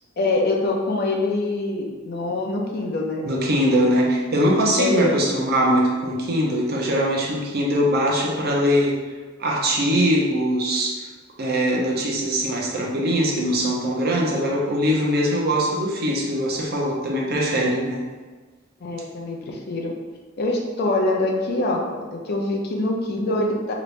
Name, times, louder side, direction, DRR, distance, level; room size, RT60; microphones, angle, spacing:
voice 1, 0.2-3.2 4.8-5.2 18.8-19.9 20.4-23.7, left 2 dB, 50° left, 0 dB, 0.5 m, -24 dB
voice 2, 3.2-9.0 9.4-11.0 11.4-18.1, equal, 50° right, -2 dB, 0.6 m, -22 dB
2.9 x 2.5 x 3.2 m, 1.3 s
head